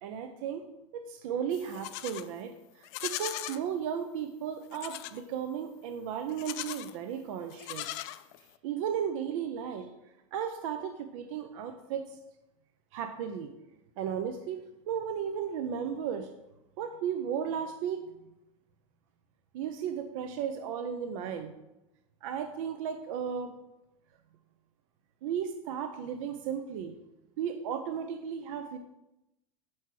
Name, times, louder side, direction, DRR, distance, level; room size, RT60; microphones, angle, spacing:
voice 1, 0.0-0.6 0.9-7.9 8.6-9.9 10.3-12.2 12.9-13.5 14.0-14.6 14.9-16.3 16.8-18.0 19.5-21.5 22.2-23.5 25.2-26.9 27.4-28.8, right 8 dB, 65° right, 7 dB, 0.6 m, -35 dB
Livestock farm animals working animals, 1.5-2.3 2.8-3.6 4.7-5.2 6.3-6.9 7.5-8.6, left 16 dB, 45° left, 0.4 m, -39 dB
6.4 x 4.7 x 5.9 m, 0.92 s
supercardioid pair, 145°, 19 cm